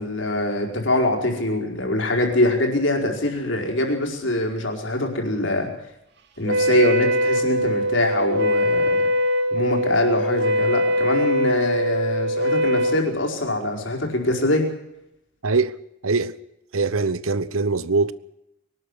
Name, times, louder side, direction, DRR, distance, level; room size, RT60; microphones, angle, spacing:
voice 1, 0.0-5.7 6.4-9.1 9.5-14.7, left 1 dB, 60° left, 4.9 m, -23 dB
Wind instrument woodwind instrument, 6.4-13.1, equal, 55° right, 2.4 m, -22 dB
voice 2, 15.4-15.7 16.0-16.3 16.7-18.1, right 4 dB, 80° right, 1.0 m, -22 dB
22.5 x 12.5 x 10.0 m
head